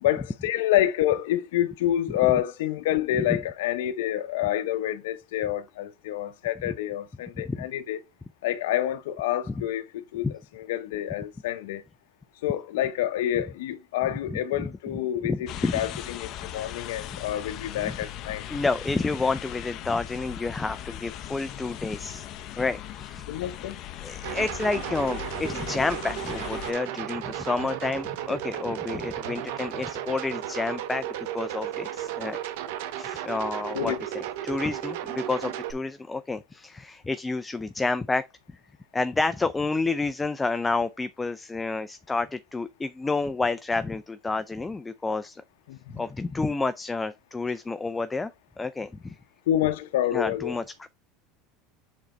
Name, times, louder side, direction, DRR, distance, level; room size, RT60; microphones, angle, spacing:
voice 1, 0.0-8.0 8.4-10.3 10.5-11.8 12.4-18.4 23.3-23.8 33.7-34.0 45.7-46.0 49.5-50.6, left 12 dB, 85° left, 0.7 m, -28 dB
voice 2, 7.4-7.7 10.2-10.3 14.3-14.7 15.2-15.7 17.8-18.0 18.5-22.3 22.6-23.3 24.0-32.4 33.0-38.3 38.9-45.4 45.9-48.3 48.6-49.2 50.1-50.9, left 3 dB, 10° left, 0.4 m, -29 dB
sound 1, 15.5-26.7, left 11 dB, 45° left, 0.9 m, -39 dB
sound 2, 24.2-35.7, right 11 dB, 75° right, 1.2 m, -34 dB
7.2 x 3.9 x 4.3 m
supercardioid pair, 140°, 0 cm